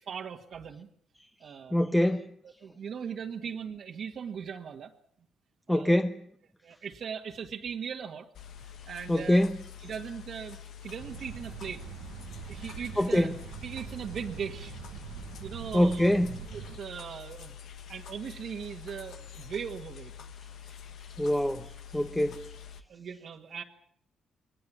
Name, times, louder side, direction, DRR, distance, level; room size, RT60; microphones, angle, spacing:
voice 1, 0.1-0.9 1.4-1.8 2.6-4.9 5.7-6.0 6.6-8.3 8.9-9.5 9.8-11.8 12.5-13.3 13.6-14.8 15.4-16.1 16.5-17.5 17.9-20.1 22.9-23.6, right 7 dB, 60° right, 1.7 m, -39 dB
voice 2, 1.7-2.3 5.7-6.2 9.1-9.6 13.0-13.3 15.7-16.3 21.2-22.5, left 1 dB, 5° left, 1.0 m, -25 dB
sound 1, 8.3-22.8, left 8 dB, 70° left, 1.5 m, -47 dB
sound 2, 11.0-16.8, right 10 dB, 85° right, 1.2 m, -44 dB
21.5 x 18.5 x 8.6 m
cardioid pair, 90°, 0 cm